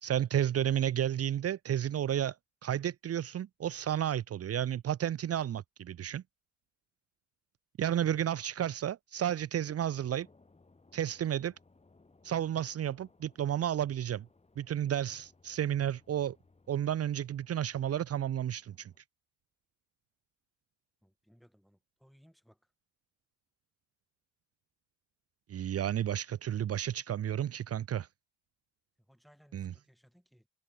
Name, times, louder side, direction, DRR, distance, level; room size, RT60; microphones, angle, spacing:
voice 1, 0.0-2.4 2.6-6.2 7.8-10.3 10.9-11.5 12.2-14.2 14.6-16.4 16.7-18.9 25.5-28.1 29.5-29.7, right 10 dB, 50° right, 0.9 m, -32 dB
sound 1, 9.7-19.0, left 3 dB, 20° left, 5.9 m, -65 dB
voice 2, 21.0-22.7 29.0-30.5, equal, ahead, 7.5 m, -64 dB
cardioid pair, 90°, 30 cm